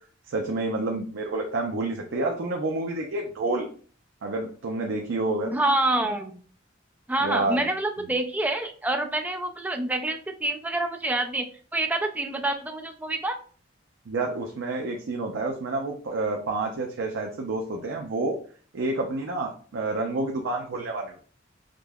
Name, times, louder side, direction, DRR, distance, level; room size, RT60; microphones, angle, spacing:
voice 1, 0.3-3.7 4.2-5.5 7.2-7.6 14.1-18.4 18.7-21.2, right 2 dB, 85° right, 1 dB, 0.5 m, -29 dB
voice 2, 5.5-6.4 7.1-11.5 11.7-13.4, right 2 dB, 10° right, 4 dB, 0.3 m, -27 dB
5.0 x 2.0 x 2.2 m, 0.42 s
head